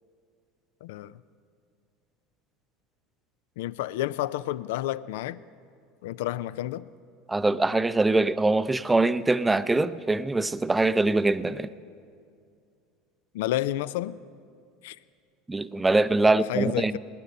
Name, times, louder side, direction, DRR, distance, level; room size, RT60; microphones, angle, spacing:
voice 1, 0.8-1.1 3.6-5.4 6.0-6.9 13.3-14.2 14.8-15.0 16.5-17.0, left 14 dB, 75° left, 18 dB, 0.3 m, -30 dB
voice 2, 7.3-11.7 15.5-17.0, right 2 dB, 15° right, 15 dB, 0.5 m, -23 dB
18.0 x 10.5 x 5.4 m, 2.3 s
hypercardioid pair, 90°, 0 cm